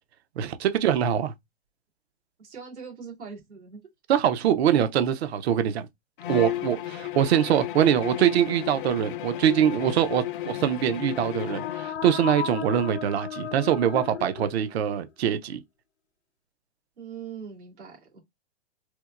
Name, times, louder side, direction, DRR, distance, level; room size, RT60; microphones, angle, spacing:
voice 1, 0.4-1.3 4.1-5.9 6.3-15.6, right 9 dB, 65° right, 0.6 m, -23 dB
voice 2, 2.4-3.8 17.0-18.2, right 6 dB, 90° right, 2.1 m, -41 dB
Bowed string instrument, 6.2-12.0, left 13 dB, 50° left, 0.4 m, -34 dB
sound 1, 11.2-15.1, left 10 dB, 85° left, 0.8 m, -35 dB
4.4 x 2.1 x 2.4 m
hypercardioid pair, 145°, 34 cm